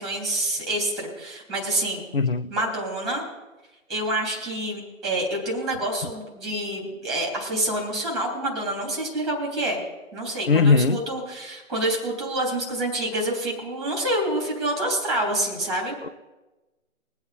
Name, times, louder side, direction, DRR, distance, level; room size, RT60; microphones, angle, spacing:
voice 1, 0.0-2.0 2.5-3.3 3.9-9.8 10.1-15.9, right 1 dB, ahead, 2.5 m, -27 dB
voice 2, 2.1-2.5 10.5-11.0, left 4 dB, 45° left, 0.6 m, -19 dB
21.5 x 7.9 x 4.1 m
figure-of-eight pair, 160°, 41 cm